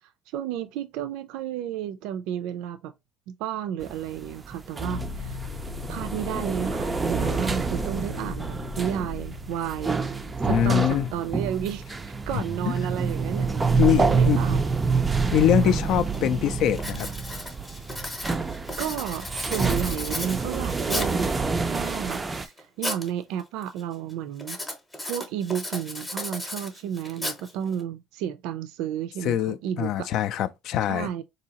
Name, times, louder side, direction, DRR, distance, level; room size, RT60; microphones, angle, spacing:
voice 1, 0.3-2.9 3.3-5.4 5.9-10.0 10.4-11.8 12.3-14.6 15.7-15.8 18.8-24.6 25.1-30.1 30.9-31.2, right 9 dB, 85° right, 0.4 m, -32 dB
sound 1, 3.8-22.5, right 4 dB, 15° right, 0.3 m, -27 dB
sound 2, 4.8-13.9, left 8 dB, 75° left, 0.8 m, -41 dB
voice 2, 10.5-11.1 12.3-12.4 13.8-14.6 15.3-17.1 29.2-31.1, left 10 dB, 60° left, 0.3 m, -23 dB
Writing, 15.6-15.7 16.1-16.4 16.7-21.3 21.9-23.1 23.4-23.8 24.4-27.8, left 1 dB, 10° left, 0.8 m, -35 dB
3.9 x 2.7 x 2.8 m
cardioid pair, 155°, 0 cm